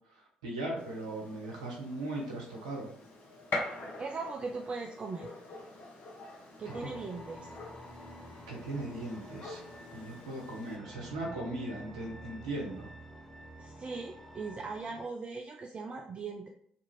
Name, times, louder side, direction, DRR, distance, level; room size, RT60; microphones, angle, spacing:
voice 1, 0.1-2.9 6.8-6.9 8.5-9.6 9.9-12.9, right 1 dB, 85° right, -1 dB, 0.7 m, -38 dB
Gunshot gunfire, 0.8-10.7, left 2 dB, 50° left, 0.8 m, -44 dB
voice 2, 4.0-5.3 6.6-7.5 13.6-16.5, right 4 dB, 35° right, 1 dB, 0.3 m, -39 dB
sound 1, 6.6-15.0, equal, 10° left, 0.8 m, -49 dB
2.6 x 2.4 x 3.0 m, 0.64 s
hypercardioid pair, 45°, 3 cm